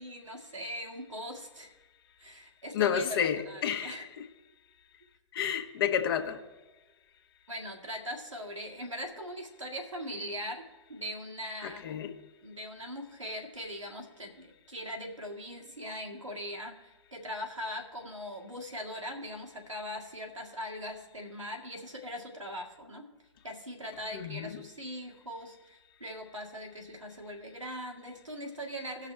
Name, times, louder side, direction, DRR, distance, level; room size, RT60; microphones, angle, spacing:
voice 1, 0.0-1.7 2.2-4.1 7.5-12.0 12.4-23.1 23.4-29.1, equal, 90° right, 1.9 m, -41 dB
voice 2, 2.7-4.3 5.3-6.4 11.6-12.1 24.1-24.6, left 9 dB, 50° left, 1.1 m, -31 dB
18.0 x 6.0 x 3.3 m
figure-of-eight pair, 110°, 16 cm